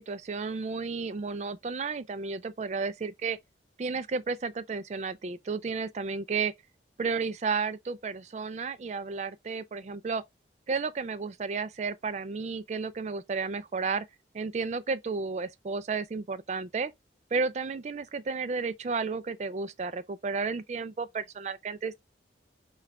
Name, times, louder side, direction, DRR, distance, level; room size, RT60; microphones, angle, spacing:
voice 1, 0.0-3.4 3.8-6.5 7.0-10.2 10.7-14.1 14.3-16.9 17.3-22.0, right 4 dB, 40° right, 0.4 m, -32 dB
5.8 x 2.4 x 3.1 m
head